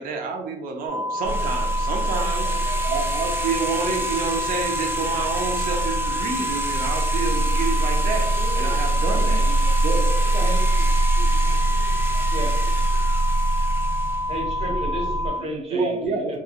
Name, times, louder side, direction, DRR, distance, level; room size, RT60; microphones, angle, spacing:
voice 1, 0.0-2.5 2.8-9.4 9.8-10.0 15.4-16.4, right 4 dB, 75° right, 3 dB, 0.5 m, -28 dB
sound 1, 0.9-15.4, left 1 dB, 85° left, 0.7 m, -28 dB
sound 2, 1.2-15.3, right 2 dB, 55° left, 0.4 m, -24 dB
sound 3, 1.2-14.3, right 2 dB, 15° right, 0.3 m, -34 dB
voice 2, 2.4-2.8 10.3-10.7 11.7-11.8 12.3-12.7 14.3-16.4, equal, 45° right, 1 dB, 0.8 m, -33 dB
voice 3, 8.4-13.1, left 1 dB, 25° left, -1 dB, 0.8 m, -44 dB
3.0 x 2.2 x 2.3 m, 0.84 s
cardioid pair, 105°, 15 cm